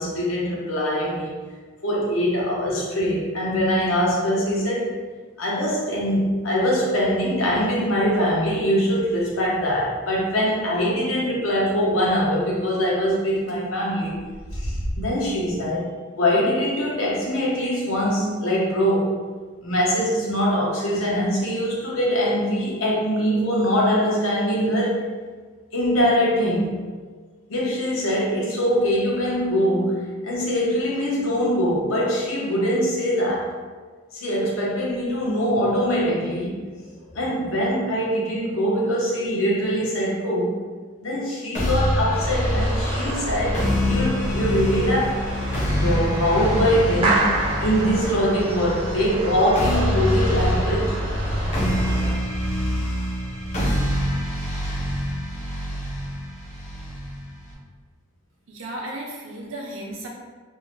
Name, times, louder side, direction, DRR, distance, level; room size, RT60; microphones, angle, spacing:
voice 1, 0.0-1.3 1.8-4.9 5.4-14.2 14.5-15.9 16.2-19.2 19.6-25.0 25.7-26.7 27.5-33.5 34.1-36.6 37.1-40.6 41.0-45.2 45.7-47.3 47.6-51.0, equal, 90° left, -4 dB, 0.8 m, -23 dB
sound 1, 9.2-9.3 9.9-10.0 10.2-10.3 10.7-10.8 12.7-12.9 13.2-13.5 14.1-15.5, equal, 65° left, 1.0 m, -32 dB
sound 2, 41.5-57.5, left 1 dB, 35° left, 0.6 m, -26 dB
sound 3, 42.1-52.2, right 1 dB, 25° right, 0.4 m, -28 dB
voice 2, 58.5-60.1, right 1 dB, 75° right, 0 dB, 0.5 m, -34 dB
2.6 x 2.0 x 3.0 m, 1.5 s
head